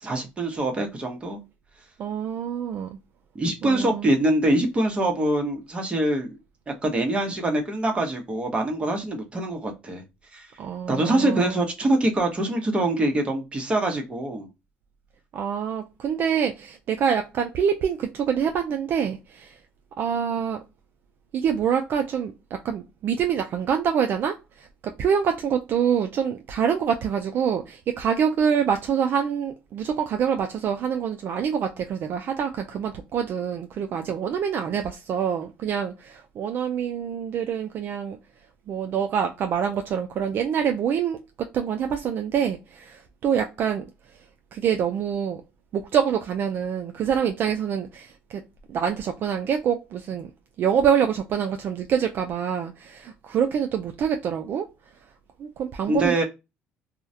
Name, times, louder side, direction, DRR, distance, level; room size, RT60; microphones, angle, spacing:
voice 1, 0.0-1.4 3.3-6.3 6.7-10.0 10.3-10.5 10.9-14.5 55.9-56.2, right 1 dB, 25° right, 0.8 m, -24 dB
voice 2, 2.0-3.0 3.6-4.1 10.6-11.6 15.3-19.6 20.0-20.6 21.3-38.2 38.7-43.8 44.5-45.4 45.7-48.4 48.7-50.3 50.6-54.7 55.4-56.2, right 8 dB, 55° right, 0.3 m, -26 dB
2.3 x 2.1 x 2.6 m
cardioid pair, 90°, 4 cm